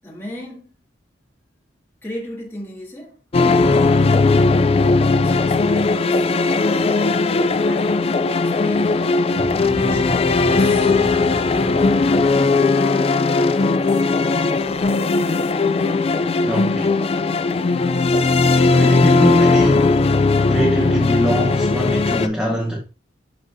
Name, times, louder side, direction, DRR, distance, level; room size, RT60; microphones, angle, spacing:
voice 1, 0.0-0.7 2.0-4.6 4.9-6.3 6.7-10.9 12.2-12.9, equal, 15° left, 2.0 m, -37 dB
sound 1, 3.3-22.3, left 3 dB, 30° left, 0.3 m, -17 dB
sound 2, 9.3-12.7, right 1 dB, 65° right, 1.5 m, -32 dB
voice 2, 16.4-17.0 18.7-20.1 20.4-22.8, equal, 5° right, 1.0 m, -22 dB
11.5 x 3.9 x 2.6 m
head